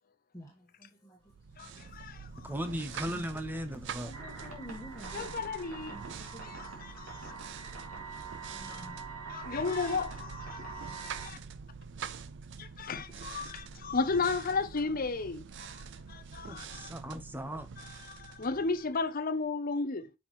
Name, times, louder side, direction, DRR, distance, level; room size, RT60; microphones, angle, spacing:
voice 1, 0.3-1.9 3.1-3.4 4.0-5.6 5.9-6.6 7.6-7.7 8.5-9.0, equal, 15° left, 1.4 m, -50 dB
sound 1, 1.3-19.1, right 6 dB, 55° right, 0.5 m, -45 dB
voice 2, 1.6-2.5 5.1-6.0 6.4-7.3 8.6-8.9 9.3-11.4 12.6-15.8 16.1-16.9 18.4-20.1, left 4 dB, 40° left, 0.7 m, -34 dB
voice 3, 2.4-4.1 16.5-17.7, equal, 10° right, 0.8 m, -37 dB
sound 2, 4.1-11.3, right 5 dB, 80° right, 2.6 m, -45 dB
6.2 x 5.8 x 3.1 m
head